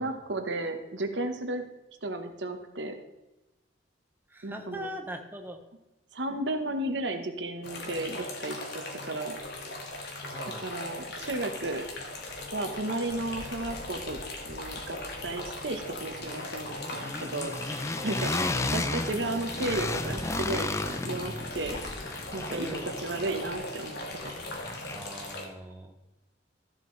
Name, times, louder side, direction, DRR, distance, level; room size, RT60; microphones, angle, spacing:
voice 1, 0.0-1.6 2.0-2.9 4.4-4.9 6.1-9.4 10.6-11.9 12.5-14.2 14.4-17.5 18.0-21.8 22.3-24.3, right 2 dB, 70° right, 6 dB, 1.1 m, -34 dB
voice 2, 4.3-5.6 10.3-10.6 13.2-13.3 18.0-18.3 20.9-21.0 22.5-22.9 24.9-25.9, equal, 10° right, 4 dB, 0.8 m, -41 dB
sound 1, 7.6-25.5, left 2 dB, 65° left, 1.6 m, -39 dB
sound 2, 11.3-11.4 11.7-12.8 13.1-25.3, left 2 dB, 15° left, 0.4 m, -36 dB
13.0 x 7.5 x 3.2 m, 1.0 s
head